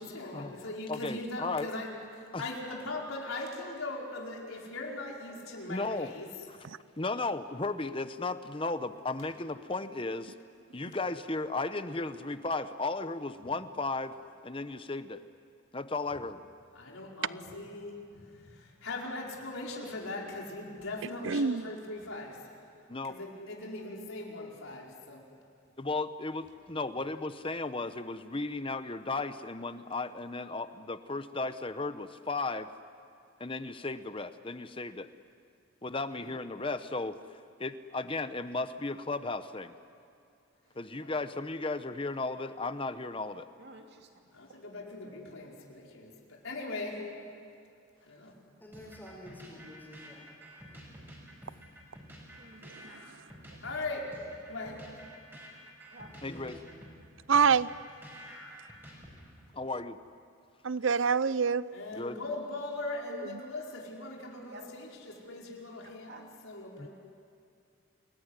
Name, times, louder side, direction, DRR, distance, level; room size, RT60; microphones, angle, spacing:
voice 1, 0.0-1.9 2.1-6.3 16.7-22.4 23.0-25.2 36.1-36.3 41.0-41.1 44.3-47.1 48.1-48.3 53.6-54.1 54.5-54.8 61.7-66.9, left 2 dB, 85° left, 5.0 m, -40 dB
voice 2, 0.9-1.7 2.3-2.5 5.7-6.1 6.5-6.6 7.0-10.3 10.7-14.1 14.4-15.2 15.7-16.4 22.9-23.2 25.8-32.7 33.4-35.1 35.8-37.2 37.6-39.7 40.8-43.5 56.2-56.6 59.5-60.0 61.9-62.2 66.8-66.9, left 3 dB, 25° left, 0.8 m, -35 dB
voice 3, 21.2-21.6 57.3-57.7 60.6-61.7 63.1-63.4, right 6 dB, 70° right, 0.6 m, -26 dB
voice 4, 43.6-44.1 52.4-53.0 55.9-56.1 64.5-64.6 66.1-66.2, right 2 dB, 50° right, 2.9 m, -50 dB
voice 5, 48.6-50.3 56.2-56.5, equal, 10° left, 5.2 m, -49 dB
sound 1, 48.7-59.5, equal, 10° right, 5.8 m, -50 dB
29.5 x 20.5 x 9.8 m
head